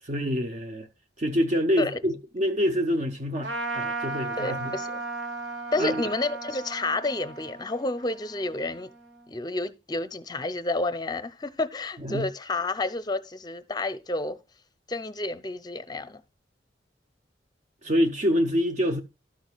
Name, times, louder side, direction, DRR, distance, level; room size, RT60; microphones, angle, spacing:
voice 1, 0.0-0.9 1.2-4.7 5.8-6.0 12.0-12.3 17.8-19.0, equal, 40° right, 0.7 m, -26 dB
Trumpet, 3.4-9.3, right 3 dB, 80° right, 1.4 m, -36 dB
voice 2, 4.4-5.0 5.7-8.9 9.3-14.4 14.9-16.2, left 2 dB, 20° left, 0.6 m, -30 dB
13.0 x 6.2 x 2.3 m
head